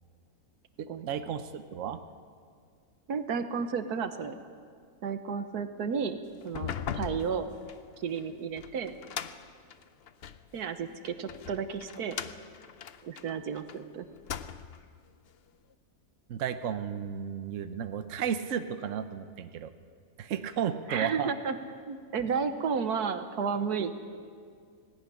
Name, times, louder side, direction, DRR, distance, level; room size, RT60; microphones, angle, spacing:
voice 1, 0.8-2.0 16.3-19.7 20.2-21.3, right 8 dB, 60° right, 9 dB, 1.2 m, -33 dB
voice 2, 3.1-4.3 5.0-6.2 6.4-7.5 8.0-9.0 10.5-12.2 13.0-14.1 20.9-21.5 21.9-24.1, right 6 dB, 85° right, 9 dB, 1.6 m, -32 dB
sound 1, 6.4-10.5 11.1-13.8 14.1-14.9, left 8 dB, 55° left, 0.7 m, -40 dB
18.0 x 17.0 x 10.0 m, 2.1 s
omnidirectional pair, 1.6 m